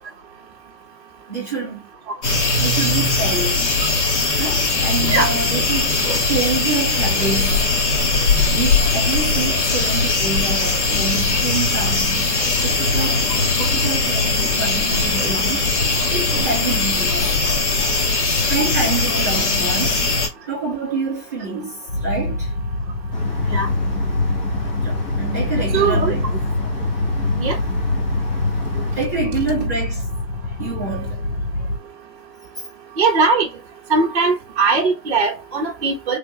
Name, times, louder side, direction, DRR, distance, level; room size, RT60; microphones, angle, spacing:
voice 1, 1.3-1.9 2.6-3.6 4.4-6.0 6.3-7.7 8.5-12.2 12.6-13.3 13.6-15.7 16.1-17.4 18.5-20.0 20.5-22.5 23.3-23.5 24.8-26.2 29.0-30.0 30.6-31.2, right 4 dB, 10° right, 0.5 m, -27 dB
sound 1, 2.2-20.3, left 3 dB, 45° left, 1.4 m, -20 dB
sound 2, 21.9-31.8, left 1 dB, 75° left, 1.1 m, -27 dB
sound 3, 23.1-29.1, left 3 dB, 25° left, 1.1 m, -24 dB
voice 2, 25.7-26.1 27.4-27.6 33.0-33.5 33.9-36.2, right 4 dB, 40° right, 0.8 m, -19 dB
3.5 x 2.5 x 2.9 m
hypercardioid pair, 145°, 49 cm